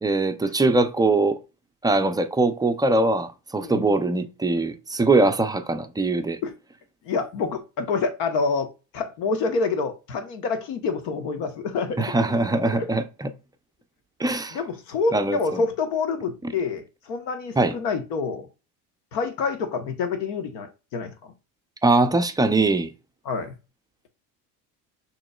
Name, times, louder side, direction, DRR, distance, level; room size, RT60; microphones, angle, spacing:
voice 1, 0.0-1.4 1.8-6.4 12.0-13.3 14.2-14.6 15.1-15.6 16.4-16.5 17.6-17.8 21.8-22.9, right 2 dB, 10° right, 0.4 m, -22 dB
voice 2, 3.6-3.9 6.4-6.5 7.0-8.7 8.9-12.1 12.7-12.9 14.5-18.5 19.1-21.3 23.2-23.5, left 4 dB, 70° left, 1.1 m, -27 dB
6.2 x 3.1 x 2.3 m
hypercardioid pair, 75°, 46 cm